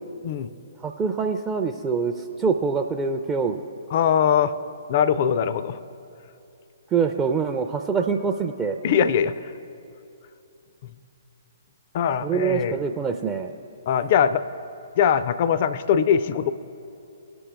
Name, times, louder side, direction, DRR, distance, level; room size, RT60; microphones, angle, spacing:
voice 1, 0.8-3.6 6.9-8.8 12.2-13.5, right 5 dB, 20° right, 3 dB, 0.4 m, -25 dB
voice 2, 3.9-4.5 4.9-5.8 8.8-9.4 11.9-12.8 13.9-14.4 15.0-16.5, left 8 dB, 45° left, 14 dB, 0.4 m, -21 dB
18.0 x 6.1 x 3.4 m, 2.6 s
figure-of-eight pair, 125°, 0 cm